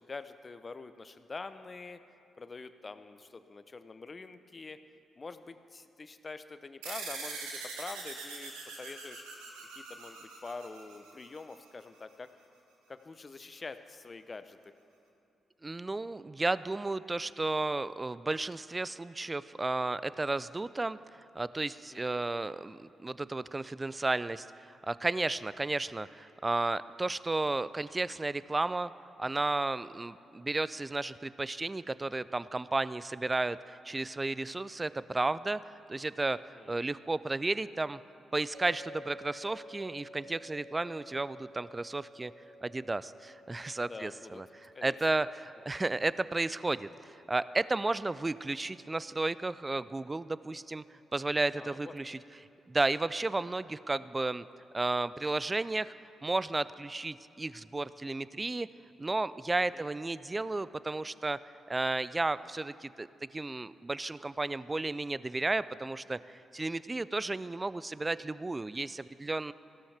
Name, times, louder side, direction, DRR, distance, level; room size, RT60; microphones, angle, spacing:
voice 1, 0.0-2.0 2.4-4.8 5.2-9.2 9.8-12.3 12.9-14.6 21.9-22.2 36.3-36.8 43.8-44.4 44.7-45.3 45.7-45.8 51.5-51.9 59.7-59.9, left 3 dB, 40° left, 11 dB, 0.7 m, -46 dB
sound 1, 6.8-11.7, right 4 dB, 85° right, 1.2 m, -43 dB
voice 2, 15.6-21.0 21.4-28.9 29.2-38.0 38.3-42.3 42.6-46.9 47.3-50.8 51.1-52.2 52.7-54.4 54.7-55.9 56.2-58.7 59.0-61.4 61.7-63.1 63.3-69.5, right 2 dB, 25° right, 17 dB, 0.4 m, -33 dB
sound 2, 38.5-51.7, equal, 45° right, 1.7 m, -54 dB
16.0 x 12.5 x 3.4 m, 2.7 s
hypercardioid pair, 40°, 0 cm